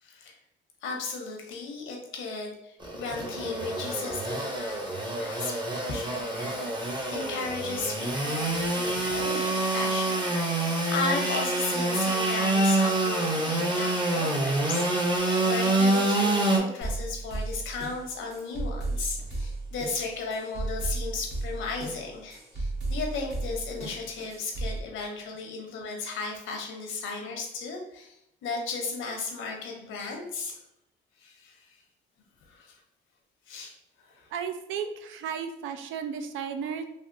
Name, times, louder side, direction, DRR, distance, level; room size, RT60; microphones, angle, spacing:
voice 1, 0.0-0.4 0.8-28.2 28.4-30.5 31.2-31.8 32.5-32.8 33.5-33.7 34.0-34.3, left 4 dB, 80° left, 1 dB, 0.8 m, -35 dB
Engine / Sawing, 2.8-16.6, right 2 dB, 20° right, 0.7 m, -27 dB
sound 1, 16.8-24.8, right 2 dB, 60° right, 1.1 m, -34 dB
voice 2, 34.3-36.8, right 7 dB, 80° right, 8 dB, 0.4 m, -34 dB
3.4 x 2.4 x 2.6 m, 0.83 s
cardioid pair, 90°, 20 cm